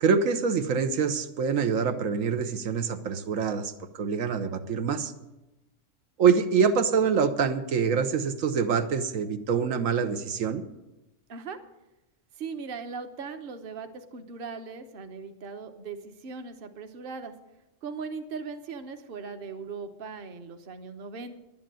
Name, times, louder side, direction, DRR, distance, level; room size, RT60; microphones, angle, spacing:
voice 1, 0.0-5.1 6.2-10.6, right 6 dB, 85° right, 7 dB, 1.3 m, -25 dB
voice 2, 12.4-17.3 17.8-21.4, right 5 dB, 50° right, 7 dB, 1.1 m, -39 dB
11.5 x 9.4 x 7.6 m, 0.97 s
omnidirectional pair, 1.3 m